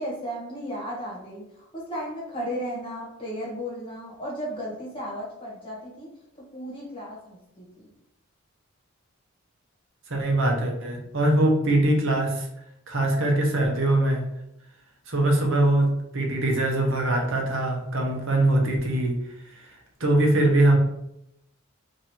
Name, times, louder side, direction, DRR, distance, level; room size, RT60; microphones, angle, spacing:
voice 1, 0.0-6.1 6.5-7.9, equal, 25° left, -4 dB, 1.3 m, -35 dB
voice 2, 10.1-12.5 12.9-14.3 15.1-19.2 19.5-20.8, right 1 dB, 60° right, 2 dB, 0.9 m, -22 dB
3.0 x 2.7 x 4.2 m, 0.82 s
head